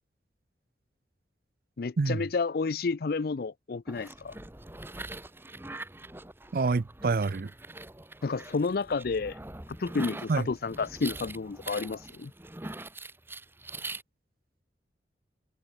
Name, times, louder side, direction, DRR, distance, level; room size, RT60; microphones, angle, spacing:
voice 1, 1.8-4.4 8.2-9.4 9.8-12.3, left 4 dB, 55° left, 0.5 m, -30 dB
sound 1, 3.9-14.0, right 2 dB, 10° right, 1.1 m, -43 dB
voice 2, 6.5-7.5 10.3-10.5, right 4 dB, 55° right, 0.5 m, -27 dB
head